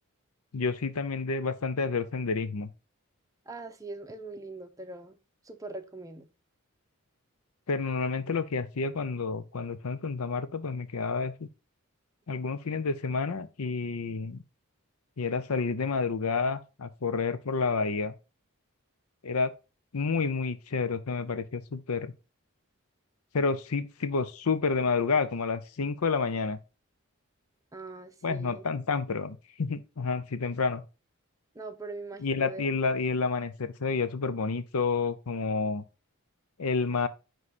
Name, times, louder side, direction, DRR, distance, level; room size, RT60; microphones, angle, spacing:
voice 1, 0.5-2.7 7.7-11.5 12.3-14.4 15.2-18.1 19.2-19.5 19.9-22.1 23.3-26.6 28.2-30.8 32.2-35.8 36.6-37.1, left 4 dB, 85° left, 0.7 m, -29 dB
voice 2, 3.5-5.2 5.4-6.2 27.7-28.7 31.5-32.7, right 3 dB, 15° right, 0.8 m, -41 dB
9.6 x 3.2 x 4.2 m
head